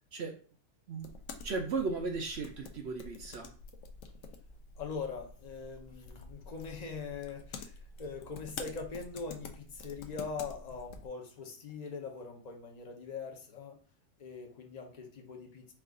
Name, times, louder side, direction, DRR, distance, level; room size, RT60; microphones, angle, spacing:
sound 1, 1.0-11.1, left 4 dB, 70° left, 0.8 m, -48 dB
voice 1, 1.4-3.5, right 4 dB, 60° right, 2 dB, 0.7 m, -36 dB
voice 2, 4.8-13.8 14.2-15.7, left 5 dB, 40° left, 2 dB, 0.6 m, -42 dB
4.6 x 2.4 x 3.6 m, 0.41 s
omnidirectional pair, 1.6 m